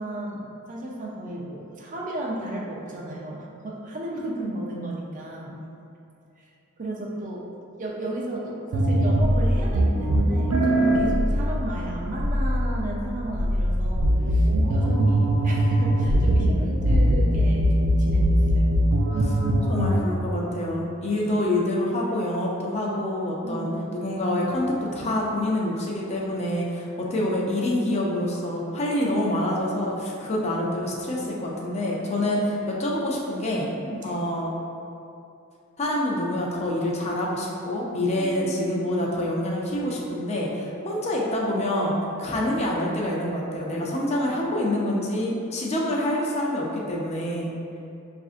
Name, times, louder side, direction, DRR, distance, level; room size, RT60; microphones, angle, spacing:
voice 1, 0.0-5.6 6.4-6.5 6.8-7.4 7.8-18.8 23.4-24.0 29.0-29.6 33.8-34.2 38.2-38.5, right 1 dB, 35° right, -3 dB, 0.5 m, -34 dB
sound 1, 8.7-20.0, equal, 85° right, 0.4 m, -21 dB
voice 2, 19.1-33.7 34.0-34.5 35.8-47.5, left 1 dB, 30° left, -3 dB, 0.5 m, -26 dB
5.9 x 2.5 x 2.4 m, 2.7 s
head